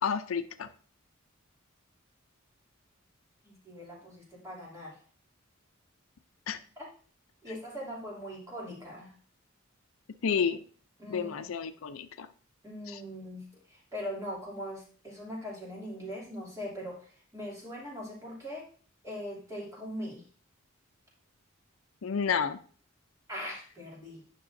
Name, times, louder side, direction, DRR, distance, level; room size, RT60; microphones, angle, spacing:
voice 1, 0.0-0.7 6.5-6.6 10.2-10.6 11.1-12.3 12.9-13.0 22.0-22.6, left 6 dB, 80° left, 11 dB, 0.5 m, -30 dB
voice 2, 3.4-5.0 6.8-6.9 7.4-9.1 11.0-11.5 12.6-18.7 19.0-20.2 23.3-24.2, equal, 15° right, -4 dB, 2.7 m, -41 dB
9.9 x 5.9 x 2.6 m, 0.42 s
head